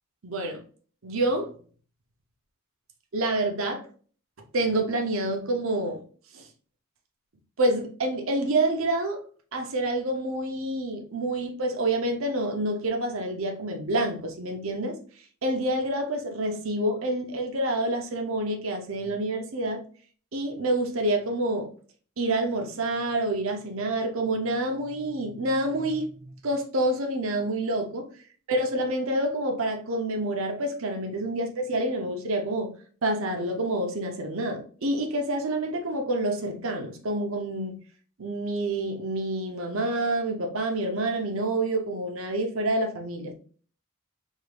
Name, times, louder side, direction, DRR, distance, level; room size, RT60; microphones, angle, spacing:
voice 1, 0.2-0.6 1.0-1.5 3.1-3.9 4.5-6.0 6.3-6.5 7.6-9.2 9.5-14.9 15.4-19.8 20.3-21.7 22.2-28.1 28.5-32.7 33.0-37.8 38.2-43.3, right 1 dB, 65° right, 0.8 m, -28 dB
3.7 x 2.6 x 3.2 m
head